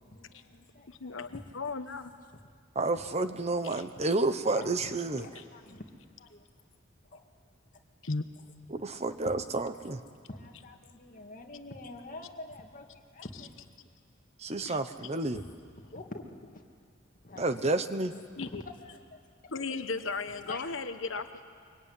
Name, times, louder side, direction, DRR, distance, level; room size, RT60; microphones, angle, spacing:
voice 1, 0.0-1.4 4.5-4.7 5.1-6.5 7.0-7.3 8.9-9.3 10.3-13.6 14.7-14.8 15.3-16.6 17.2-17.7 18.1-19.0 19.7-19.8 20.5-20.9, left 2 dB, 45° left, 2 dB, 2.3 m, -46 dB
voice 2, 0.9-2.1 3.7-3.8 5.3-5.4 8.0-8.3 14.6-14.8 18.4-18.6 19.5-21.4, left 4 dB, 70° left, 9 dB, 1.2 m, -36 dB
voice 3, 2.7-5.3 8.7-10.0 14.4-15.4 17.4-18.1, right 2 dB, 35° right, 10 dB, 1.0 m, -30 dB
24.0 x 24.0 x 9.7 m, 2.1 s
head